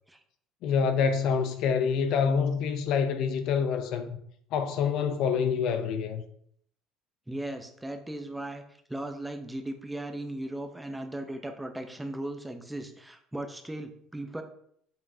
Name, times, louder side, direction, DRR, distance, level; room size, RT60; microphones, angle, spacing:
voice 1, 0.6-4.2 4.5-6.2, left 6 dB, 60° left, 0.6 m, -26 dB
voice 2, 7.3-8.6 8.9-14.4, right 1 dB, 5° right, 0.7 m, -37 dB
7.6 x 5.1 x 2.7 m
cardioid pair, 140°, 0 cm